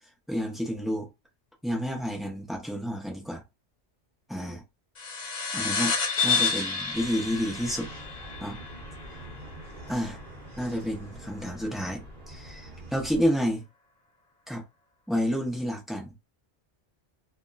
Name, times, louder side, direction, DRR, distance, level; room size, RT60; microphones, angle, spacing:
voice 1, 0.3-1.1 1.6-3.4 4.3-4.6 5.5-5.9 6.2-7.9 8.4-8.6 9.9-10.2 10.6-13.6 14.5-14.6 15.1-16.1, equal, ahead, 0.5 m, -30 dB
sound 1, 5.0-9.9, left 5 dB, 45° left, 0.6 m, -30 dB
sound 2, 6.9-13.3, right 1 dB, 45° right, 1.1 m, -45 dB
2.8 x 2.1 x 2.3 m
omnidirectional pair, 1.2 m